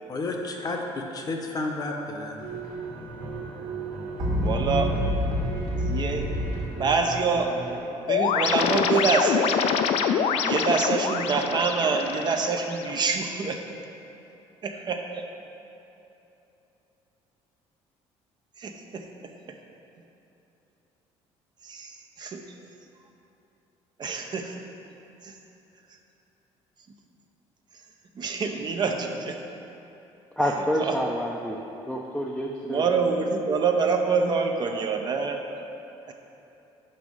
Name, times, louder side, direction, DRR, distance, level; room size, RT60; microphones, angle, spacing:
voice 1, 0.1-2.4, left 2 dB, 35° left, 2 dB, 0.8 m, -31 dB
sound 1, 2.4-7.8, equal, 85° right, 1.6 m, -29 dB
voice 2, 4.4-4.9 5.8-6.3 6.8-7.5 8.0-9.6 10.4-13.6 14.6-15.3 18.6-19.0 21.6-21.9 22.2-22.4 24.0-24.5 25.2-25.3 28.2-29.4 30.8-30.9 32.7-35.4 36.1-36.2, right 4 dB, 40° right, 4 dB, 0.6 m, -26 dB
sound 2, 8.1-13.1, left 7 dB, 65° left, 0.4 m, -25 dB
voice 3, 30.4-31.6 31.9-32.9, equal, ahead, -2 dB, 0.5 m, -28 dB
5.5 x 5.1 x 6.1 m, 3.0 s
cardioid pair, 110°, 12 cm